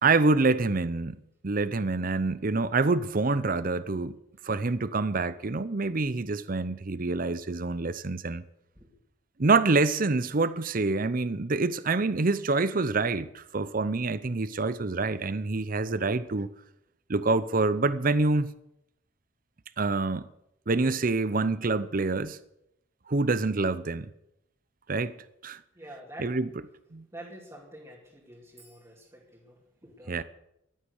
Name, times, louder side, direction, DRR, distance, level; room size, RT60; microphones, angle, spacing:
voice 1, 0.0-4.2 4.4-8.4 9.4-16.5 17.1-18.5 19.8-20.3 20.7-22.4 23.1-24.1 24.9-25.1 25.4-25.6 26.2-26.5 26.9-27.0 30.1-30.2, right 3 dB, 45° right, 0.7 m, -26 dB
voice 2, 25.7-26.4 27.1-30.2, right 1 dB, 15° right, 2.5 m, -47 dB
15.0 x 11.5 x 6.5 m
head